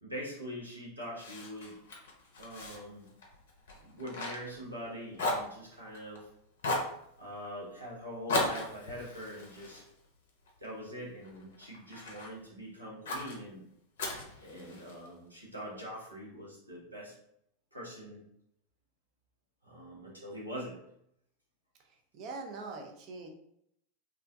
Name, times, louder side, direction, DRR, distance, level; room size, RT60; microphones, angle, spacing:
voice 1, 0.0-1.8 2.4-3.1 3.8-6.3 7.2-9.8 10.6-13.6 14.4-17.1 17.7-18.2 19.6-20.8, equal, 90° right, -5 dB, 0.8 m, -43 dB
Fire, 1.2-4.9 5.1-6.2 6.6-7.0 8.3-10.7 11.2-12.3 13.1-13.4 14.0-15.1, left 2 dB, 65° left, 0.5 m, -36 dB
voice 2, 22.1-23.3, right 3 dB, 40° right, 1 dB, 0.5 m, -42 dB
2.4 x 2.2 x 2.5 m, 0.74 s
figure-of-eight pair, 85°, 0 cm